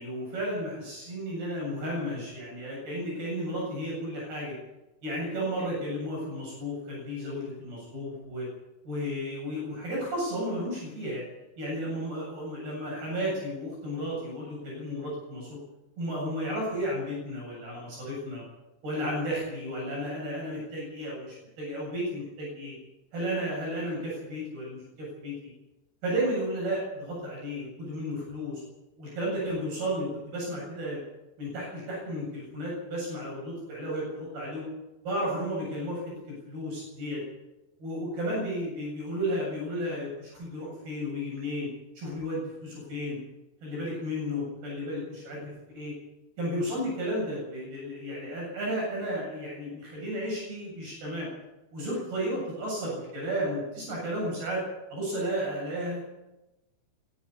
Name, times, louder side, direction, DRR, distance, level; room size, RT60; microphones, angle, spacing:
voice 1, 0.0-4.5 5.0-8.5 8.8-11.2 11.6-15.6 16.0-18.4 18.8-22.7 23.1-25.3 26.0-28.6 29.0-31.0 31.4-34.7 35.0-37.2 37.8-41.7 42.0-43.2 43.6-45.9 46.4-51.3 51.7-54.6 54.9-56.0, equal, 60° right, -4 dB, 9.7 m, -33 dB
23.5 x 11.5 x 9.7 m, 1.0 s
omnidirectional pair, 4.9 m